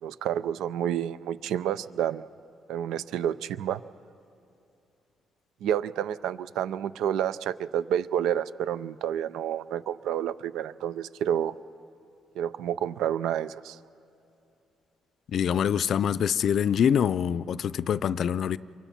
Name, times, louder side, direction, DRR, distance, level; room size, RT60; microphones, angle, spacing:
voice 1, 0.0-2.3 2.7-3.8 5.6-11.6 12.4-13.8, right 10 dB, 85° right, 0.5 m, -29 dB
voice 2, 15.3-18.6, left 8 dB, 65° left, 0.5 m, -25 dB
28.0 x 24.0 x 5.9 m
cardioid pair, 90°, 0 cm